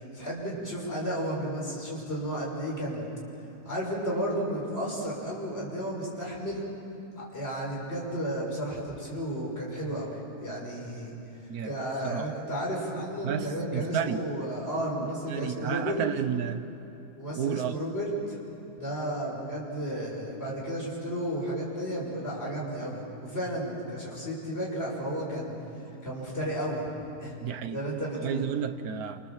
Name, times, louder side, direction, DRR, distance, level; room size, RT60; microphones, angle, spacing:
voice 1, 0.1-3.1 3.6-6.7 7.2-11.1 11.6-16.0 17.2-18.4 18.8-25.6 26.0-26.9 27.2-27.4 27.7-28.4, right 1 dB, 35° left, -4 dB, 6.3 m, -33 dB
voice 2, 13.2-14.2 15.3-16.6 17.4-17.8 27.4-27.8 28.2-29.2, right 8 dB, 65° right, 9 dB, 1.5 m, -31 dB
28.5 x 26.5 x 7.5 m, 2.8 s
omnidirectional pair, 1.7 m